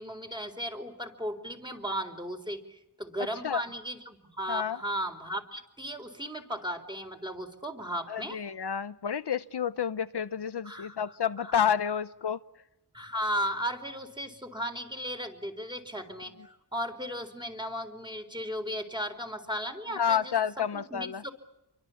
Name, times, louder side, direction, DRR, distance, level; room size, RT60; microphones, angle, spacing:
voice 1, 0.0-8.4 10.6-11.0 11.4-11.5 12.9-21.3, equal, 10° right, 5 dB, 4.1 m, -36 dB
voice 2, 8.1-12.4 20.0-21.2, left 8 dB, 70° left, 12 dB, 0.9 m, -29 dB
29.5 x 24.0 x 7.2 m, 0.90 s
wide cardioid pair, 75°, 42 cm